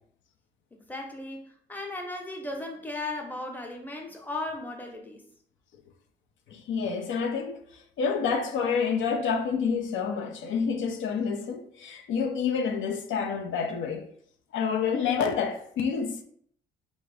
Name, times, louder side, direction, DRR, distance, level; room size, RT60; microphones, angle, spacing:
voice 1, 0.7-5.2, left 2 dB, 10° left, 0.8 m, -36 dB
voice 2, 6.5-14.1 14.5-16.2, left 6 dB, 75° left, 0.6 m, -28 dB
3.6 x 2.6 x 3.3 m
cardioid pair, 90°, 20 cm